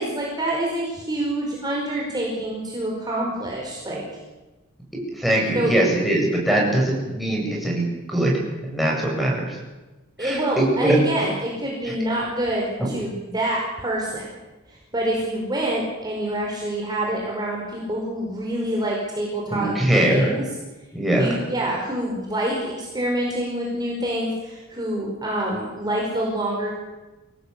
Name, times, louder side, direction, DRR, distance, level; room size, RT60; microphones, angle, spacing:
voice 1, 0.0-4.1 5.6-5.7 10.2-14.2 14.7-20.5 21.0-26.7, right 1 dB, 20° right, -3 dB, 5.1 m, -26 dB
voice 2, 5.2-9.6 10.2-11.0 12.8-12.9 19.5-20.3 20.9-21.3, right 1 dB, ahead, -3 dB, 7.9 m, -21 dB
25.0 x 18.5 x 8.5 m, 1.1 s
head